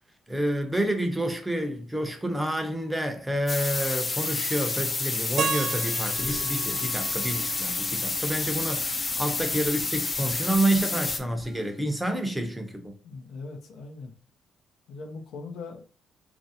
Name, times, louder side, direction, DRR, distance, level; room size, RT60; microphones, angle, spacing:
voice 1, 0.3-12.9, right 1 dB, 10° right, 0.6 m, -29 dB
sound 1, 3.5-11.2, left 3 dB, 35° left, 0.5 m, -29 dB
Keyboard (musical), 5.4-8.3, right 6 dB, 60° right, 0.3 m, -34 dB
sound 2, 6.1-11.9, left 3 dB, 70° left, 1.0 m, -46 dB
voice 2, 13.0-14.1 14.9-15.8, left 3 dB, 85° left, 0.6 m, -40 dB
3.1 x 2.5 x 2.7 m
cardioid pair, 90°, 0 cm